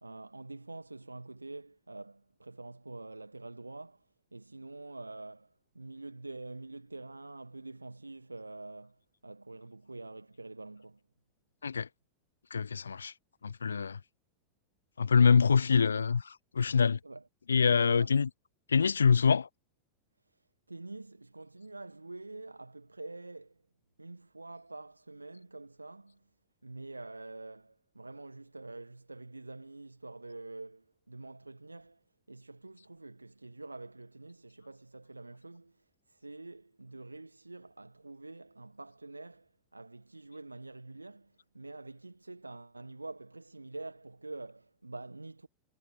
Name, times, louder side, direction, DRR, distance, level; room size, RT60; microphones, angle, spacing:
voice 1, 0.0-4.1 4.3-11.0 17.0-17.2 17.6-18.1 20.7-23.6 24.0-26.2 26.6-32.0 32.3-45.5, right 2 dB, 80° right, 1.7 m, -46 dB
voice 2, 12.5-13.1 13.4-14.0 15.0-17.0 17.5-18.3 18.7-19.5, left 6 dB, 75° left, 0.7 m, -25 dB
figure-of-eight pair, 90°, 0 cm